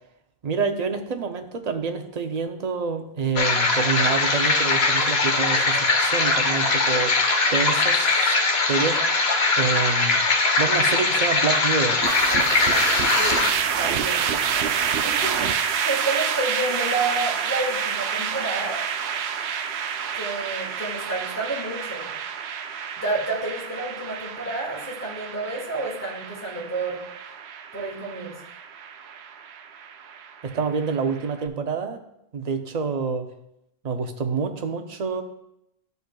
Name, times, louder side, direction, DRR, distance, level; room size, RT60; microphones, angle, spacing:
voice 1, 0.4-7.1 7.5-8.1 8.7-9.2 9.6-10.2 10.6-12.0 30.4-32.0 32.3-33.3 33.8-35.2, right 5 dB, 45° right, 6 dB, 0.6 m, -27 dB
sound 1, 3.4-13.5, left 3 dB, 80° left, 1.1 m, -21 dB
sound 2, 12.0-31.3, right 7 dB, 85° right, 0.8 m, -28 dB
voice 2, 13.2-13.5 13.8-14.3 15.0-18.8 20.1-22.1 23.0-27.3 27.7-28.4, right 2 dB, 15° left, -4 dB, 2.1 m, -30 dB
11.5 x 5.4 x 2.2 m, 0.82 s
omnidirectional pair, 1.0 m